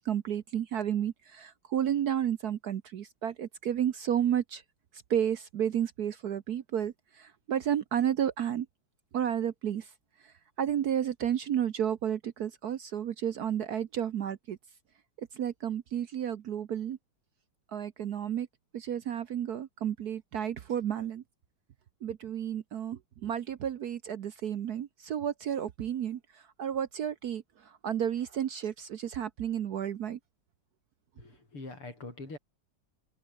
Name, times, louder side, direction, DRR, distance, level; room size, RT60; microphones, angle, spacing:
voice 1, 0.1-4.6 5.1-8.7 9.1-9.9 10.6-14.6 15.4-17.0 17.7-18.5 18.7-21.2 22.0-26.2 26.6-27.4 27.8-30.2, right 9 dB, 60° right, 1.1 m, -31 dB
voice 2, 31.1-32.4, left 2 dB, 85° left, 8.5 m, -43 dB
omnidirectional pair, 2.4 m